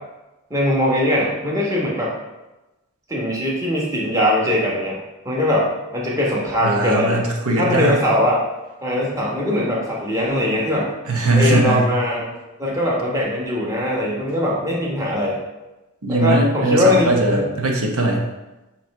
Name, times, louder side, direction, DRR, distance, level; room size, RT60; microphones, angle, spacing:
voice 1, 0.5-2.1 3.1-5.0 5.2-7.2 7.5-8.4 8.8-10.9 11.3-12.3 12.6-15.4 16.1-17.5, left 1 dB, 15° right, -4 dB, 1.2 m, -21 dB
voice 2, 6.6-8.0 11.1-11.9 16.0-18.2, right 2 dB, 80° right, 0 dB, 1.0 m, -19 dB
7.0 x 3.2 x 4.7 m, 1.0 s
head